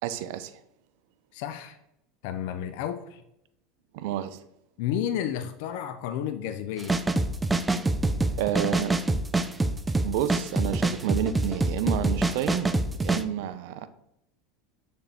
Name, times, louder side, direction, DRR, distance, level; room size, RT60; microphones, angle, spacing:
voice 1, 0.0-0.6 3.9-4.4 8.4-9.0 10.0-12.7 13.0-13.9, right 10 dB, 70° right, 0.5 m, -30 dB
voice 2, 1.3-1.8 2.2-3.2 4.8-7.0, left 10 dB, 70° left, 0.4 m, -31 dB
sound 1, 6.8-13.2, right 2 dB, 10° right, 0.4 m, -25 dB
6.6 x 3.5 x 4.3 m
hypercardioid pair, 100°, 0 cm